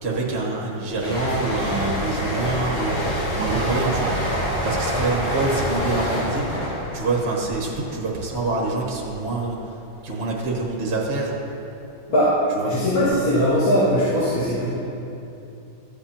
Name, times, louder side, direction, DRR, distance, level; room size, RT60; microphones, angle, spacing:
voice 1, 0.0-4.1 4.6-6.6 6.9-9.6 10.0-11.3 12.5-12.7, right 3 dB, 35° right, -2 dB, 1.4 m, -26 dB
sound 1, 1.0-8.5 8.8-9.1, equal, 35° left, 1.6 m, -27 dB
sound 2, 3.4-8.1, right 4 dB, 80° right, 0.7 m, -33 dB
voice 2, 12.6-14.7, equal, 90° left, -13 dB, 2.8 m, -20 dB
14.5 x 8.0 x 2.9 m, 2.8 s
omnidirectional pair, 2.0 m